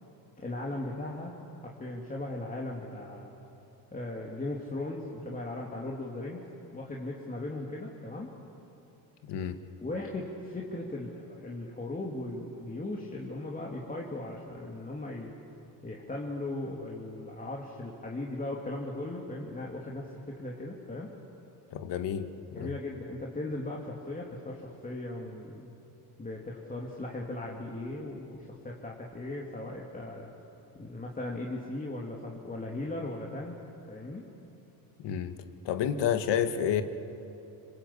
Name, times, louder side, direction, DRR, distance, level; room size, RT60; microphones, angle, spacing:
voice 1, 0.4-3.3 3.9-8.3 9.8-15.3 15.8-21.1 22.5-25.7 26.2-30.3 30.7-33.6 33.9-34.3, left 2 dB, 20° left, -2 dB, 2.9 m, -38 dB
voice 2, 9.3-9.6 21.7-22.7 35.0-35.3 35.7-36.8, left 9 dB, 75° left, 9 dB, 1.9 m, -30 dB
26.5 x 26.0 x 8.6 m, 2.9 s
cardioid pair, 110°, 42 cm